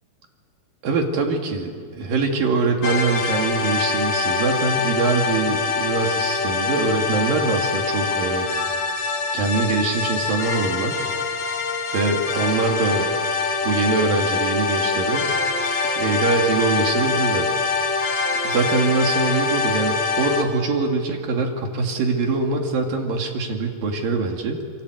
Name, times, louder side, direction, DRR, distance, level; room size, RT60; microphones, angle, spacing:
voice 1, 0.8-8.5 9.3-11.1 11.9-13.1 13.6-15.3 16.0-17.5 18.5-24.6, right 3 dB, 80° right, 2 dB, 4.2 m, -23 dB
sound 1, 2.8-20.4, left 4 dB, 55° left, 2.7 m, -24 dB
28.0 x 24.5 x 8.1 m, 2.1 s
omnidirectional pair, 4.0 m